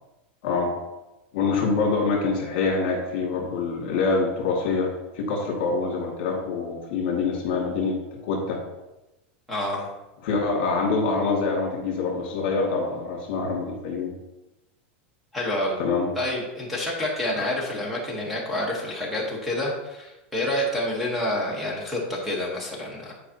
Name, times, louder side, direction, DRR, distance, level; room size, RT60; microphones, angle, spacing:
voice 1, 1.3-4.9 5.2-8.0 8.2-8.6 10.2-14.1 15.8-16.1, left 4 dB, 50° left, -1 dB, 2.1 m, -25 dB
voice 2, 9.5-9.9 15.3-15.8 16.1-23.1, left 1 dB, ahead, -3 dB, 1.2 m, -28 dB
10.0 x 4.9 x 2.9 m, 1.0 s
supercardioid pair, 180°, 6 cm